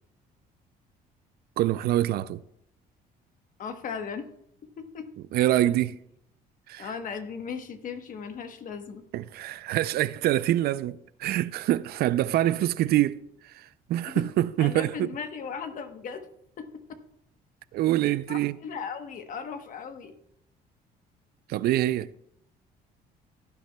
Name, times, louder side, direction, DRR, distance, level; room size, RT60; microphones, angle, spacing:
voice 1, 1.6-2.4 5.3-5.9 6.7-6.9 9.1-13.2 13.4-15.1 17.7-18.6 21.5-22.1, right 14 dB, 70° right, 0.4 m, -25 dB
voice 2, 3.6-4.3 4.8-5.1 5.6-5.8 6.8-9.0 12.4-12.5 14.1-14.2 14.6-16.3 16.6-16.8 18.3-20.2, left 6 dB, 50° left, 1.1 m, -37 dB
16.5 x 9.4 x 2.2 m
cardioid pair, 110°, 17 cm